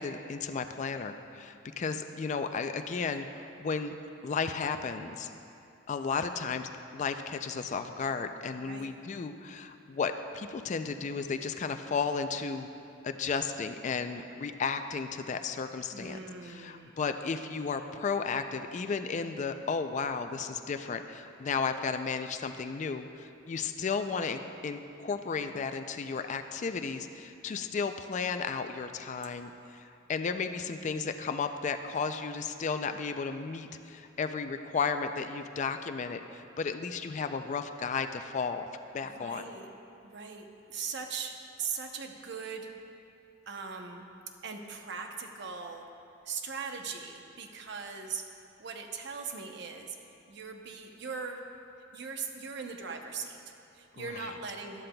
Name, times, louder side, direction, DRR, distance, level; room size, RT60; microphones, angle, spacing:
voice 1, 0.0-3.9 4.2-5.3 5.9-12.7 13.0-16.2 16.4-38.7 38.9-39.5 54.0-54.3, left 5 dB, 35° left, 8 dB, 0.3 m, -34 dB
voice 2, 8.6-8.9 15.9-17.0 39.0-39.7 40.0-42.7 43.5-44.1 44.4-45.9 46.2-48.3 48.6-51.4 51.9-54.9, right 5 dB, 60° right, 4 dB, 0.7 m, -40 dB
12.0 x 11.5 x 2.3 m, 2.7 s
head